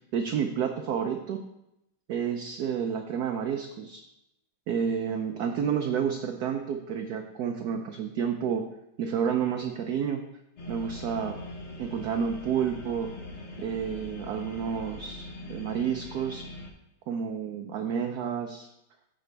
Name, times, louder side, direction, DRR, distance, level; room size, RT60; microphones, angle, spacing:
voice 1, 0.1-1.4 2.1-4.0 4.7-8.6 9.0-10.2 10.7-11.4 11.8-13.1 13.6-16.5 17.1-18.7, right 7 dB, 70° right, 4 dB, 0.9 m, -30 dB
sound 1, 10.6-16.7, left 1 dB, 40° left, 1.3 m, -42 dB
14.5 x 5.0 x 3.4 m, 0.87 s
omnidirectional pair, 2.2 m